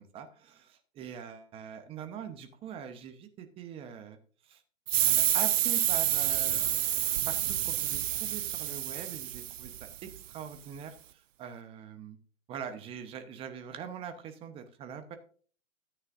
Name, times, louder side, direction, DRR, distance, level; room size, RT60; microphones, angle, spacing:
voice 1, 0.0-4.2 4.4-4.6 5.0-6.8 7.3-12.2 12.5-15.2, right 7 dB, 15° right, 9 dB, 0.9 m, -43 dB
sound 1, 4.9-10.2, right 12 dB, 75° right, 0.6 m, -29 dB
13.5 x 8.9 x 2.6 m, 0.42 s
hypercardioid pair, 145°, 39 cm